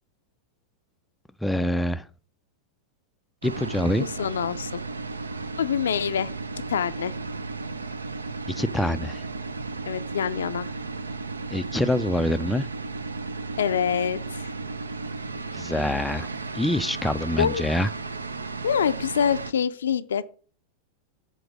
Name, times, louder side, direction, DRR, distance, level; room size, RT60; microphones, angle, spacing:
voice 1, 1.4-2.1 3.4-4.1 8.5-9.3 11.5-12.7 15.5-16.3 16.5-17.9, left 1 dB, 5° left, 0.3 m, -25 dB
sound 1, 3.4-19.5, right 3 dB, 75° right, 0.5 m, -34 dB
voice 2, 3.9-4.8 5.6-6.3 6.7-7.1 9.9-10.7 13.6-14.5 17.4-17.6 18.6-20.2, left 8 dB, 65° left, 0.4 m, -25 dB
7.7 x 3.9 x 6.2 m
figure-of-eight pair, 90°, 0 cm